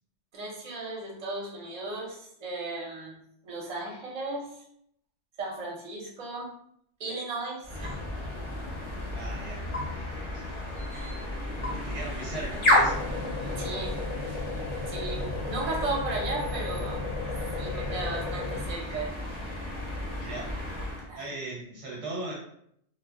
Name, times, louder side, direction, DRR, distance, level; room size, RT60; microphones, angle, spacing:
voice 1, 0.3-3.2 3.4-4.6 5.4-6.5 7.0-8.0 10.9-11.1 13.4-14.0 14.9-17.0 17.6-19.1 21.1-21.3, right 3 dB, 40° right, -2 dB, 0.7 m, -35 dB
sound 1, 7.6-21.1, left 1 dB, 35° left, 0.6 m, -31 dB
voice 2, 9.1-10.5 10.8-10.9 11.7-13.0 20.2-20.6 21.1-22.3, right 2 dB, 85° right, -3 dB, 1.0 m, -39 dB
2.1 x 2.0 x 3.5 m, 0.71 s
omnidirectional pair, 1.2 m